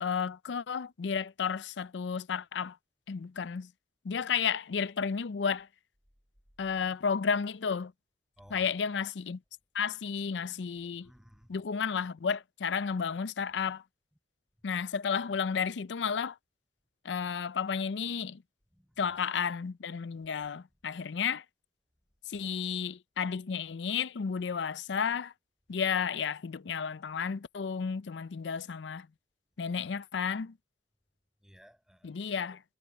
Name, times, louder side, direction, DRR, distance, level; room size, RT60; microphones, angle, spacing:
voice 1, 0.0-2.8 3.1-3.7 4.0-5.7 6.6-7.9 8.5-9.4 9.7-11.1 11.5-13.8 14.6-16.4 17.0-18.4 19.0-21.4 22.3-25.3 25.7-29.1 29.6-30.6 32.0-32.6, left 6 dB, 85° left, 0.5 m, -32 dB
voice 2, 8.4-8.8 11.0-11.5 18.8-19.0 20.4-20.5 31.4-32.1, equal, 5° right, 7.8 m, -58 dB
head